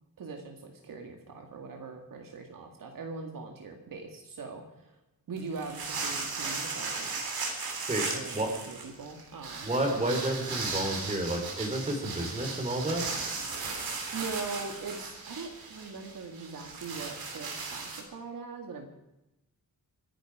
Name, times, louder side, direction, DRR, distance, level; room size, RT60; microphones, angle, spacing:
voice 1, 0.2-5.0 5.3-7.2 8.0-9.7 14.1-18.9, right 4 dB, 65° right, 3 dB, 2.2 m, -41 dB
sound 1, 5.4-18.0, right 4 dB, 80° right, 3.4 m, -36 dB
voice 2, 9.6-13.0, right 1 dB, 20° right, 2 dB, 4.0 m, -30 dB
25.0 x 10.0 x 5.0 m, 0.90 s
wide cardioid pair, 145°, 36 cm